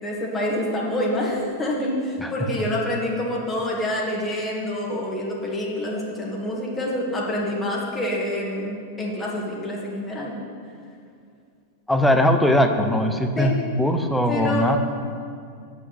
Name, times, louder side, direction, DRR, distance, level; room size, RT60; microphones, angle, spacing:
voice 1, 0.0-10.3 13.4-13.5 14.3-14.8, left 1 dB, 20° left, -3 dB, 2.2 m, -27 dB
voice 2, 11.9-14.8, left 1 dB, 5° left, 5 dB, 0.9 m, -20 dB
7.8 x 5.9 x 7.8 m, 2.3 s
hypercardioid pair, 95°, 0 cm